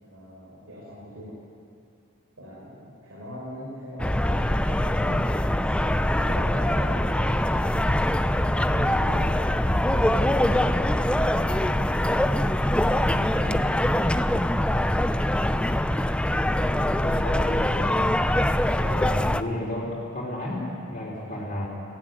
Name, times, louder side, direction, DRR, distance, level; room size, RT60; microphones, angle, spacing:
voice 1, 0.0-1.4 2.4-7.9 8.3-11.8 12.8-14.2, equal, 90° right, -6 dB, 5.4 m, -40 dB
sound 1, 4.0-19.4, left 1 dB, 5° left, 0.4 m, -23 dB
voice 2, 16.5-18.1 18.8-21.7, left 1 dB, 35° left, -6 dB, 3.7 m, -33 dB
20.5 x 16.0 x 9.3 m, 2.4 s
head